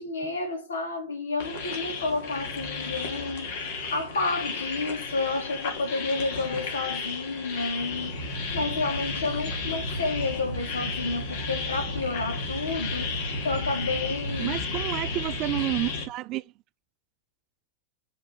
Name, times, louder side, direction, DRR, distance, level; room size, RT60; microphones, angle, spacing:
voice 1, 0.0-8.2 8.5-13.2 13.4-14.6, left 3 dB, 70° left, 2.8 m, -30 dB
sound 1, 1.4-16.1, left 3 dB, 55° left, 2.5 m, -33 dB
voice 2, 14.4-16.4, right 16 dB, 40° right, 0.4 m, -30 dB
6.5 x 5.8 x 4.4 m
figure-of-eight pair, 90°, 0 cm